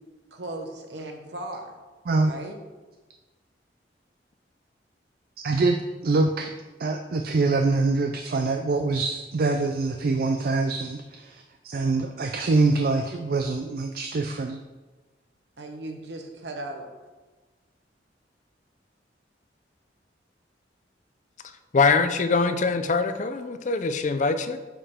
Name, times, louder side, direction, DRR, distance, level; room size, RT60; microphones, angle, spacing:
voice 1, 0.3-1.7 2.2-2.6 15.6-16.9, right 1 dB, 75° right, 4 dB, 1.1 m, -37 dB
voice 2, 5.4-6.5 6.8-14.6, right 3 dB, 55° right, 5 dB, 0.4 m, -24 dB
voice 3, 21.7-24.6, left 4 dB, 45° left, 10 dB, 0.5 m, -23 dB
8.5 x 5.6 x 3.6 m, 1.2 s
head